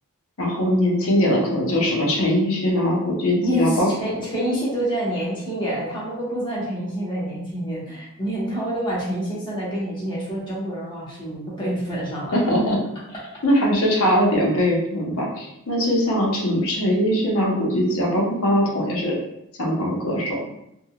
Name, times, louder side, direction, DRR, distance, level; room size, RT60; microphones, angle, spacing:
voice 1, 0.4-3.9 12.3-12.8 13.4-19.2 19.6-20.4, equal, 85° left, -2 dB, 0.8 m, -21 dB
voice 2, 3.4-12.4, equal, 20° left, -7 dB, 1.0 m, -27 dB
3.6 x 2.2 x 2.3 m, 0.81 s
head